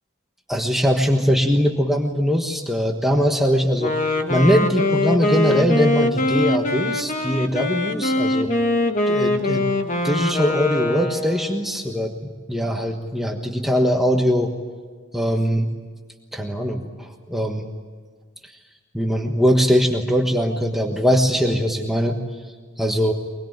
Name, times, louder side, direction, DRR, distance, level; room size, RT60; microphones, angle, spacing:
voice 1, 0.5-8.5 9.1-9.7 10.0-14.5 15.1-15.7 16.3-17.7 18.4-18.6 18.9-22.2 22.8-23.1, equal, ahead, 2 dB, 1.4 m, -21 dB
Wind instrument woodwind instrument, 3.8-11.7, left 1 dB, 40° left, 1.6 m, -22 dB
24.0 x 21.0 x 9.3 m, 1.5 s
head